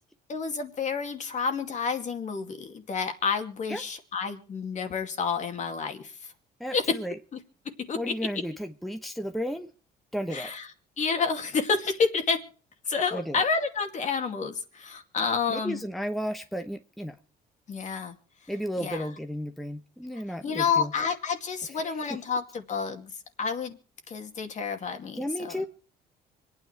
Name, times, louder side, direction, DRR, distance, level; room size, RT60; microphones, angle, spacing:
voice 1, 0.3-6.3 6.7-7.0 7.3-7.4 7.6-8.0 10.3-10.7 11.0-12.4 12.9-15.8 17.7-18.2 18.8-19.1 20.4-23.8 24.1-25.6, left 5 dB, 45° left, 6 dB, 2.4 m, -29 dB
voice 2, 6.6-7.1 8.0-9.7 10.1-10.5 13.1-13.4 15.5-17.2 18.5-20.9 21.8-21.9 25.1-25.6, equal, ahead, 6 dB, 1.0 m, -33 dB
25.5 x 9.5 x 4.6 m, 0.39 s
cardioid pair, 110°, 17 cm